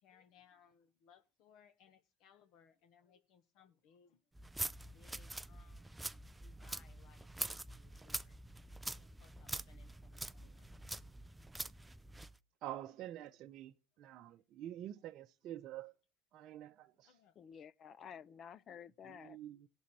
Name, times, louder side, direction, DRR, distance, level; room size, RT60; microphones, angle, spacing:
voice 1, 0.0-4.2 4.8-6.0 6.3-7.3 7.7-8.4 9.0-10.8 13.9-14.0 16.8-17.3, left 7 dB, 70° left, 1.0 m, -67 dB
sound 1, 4.3-12.4, right 2 dB, 10° right, 0.4 m, -45 dB
voice 2, 12.6-15.9 16.3-17.1 19.0-19.7, right 12 dB, 55° right, 0.6 m, -48 dB
voice 3, 17.4-19.4, left 8 dB, 45° left, 0.5 m, -52 dB
18.0 x 6.2 x 4.1 m
supercardioid pair, 95°, 0 cm